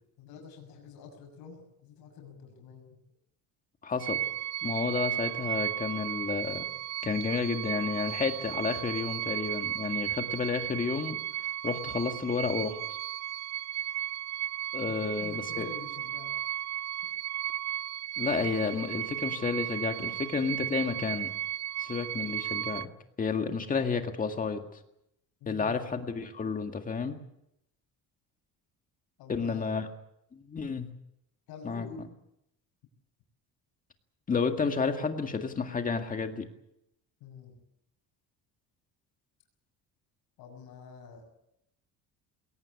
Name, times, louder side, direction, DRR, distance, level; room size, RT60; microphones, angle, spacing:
voice 1, 0.2-3.0 14.8-16.3 25.4-25.9 29.2-29.8 31.5-32.1 37.2-37.6 40.4-41.2, left 6 dB, 85° left, 2 dB, 6.6 m, -47 dB
voice 2, 3.8-4.2 4.6-6.7 7.0-12.8 14.7-15.7 18.2-21.3 21.8-22.9 23.2-24.8 25.5-27.2 29.3-29.8 30.3-30.9 31.6-31.9 34.3-36.5, left 5 dB, 25° left, 6 dB, 2.0 m, -31 dB
sound 1, 4.0-22.9, right 12 dB, 50° right, 0.8 m, -34 dB
22.0 x 18.0 x 8.5 m, 0.80 s
cardioid pair, 165°, 36 cm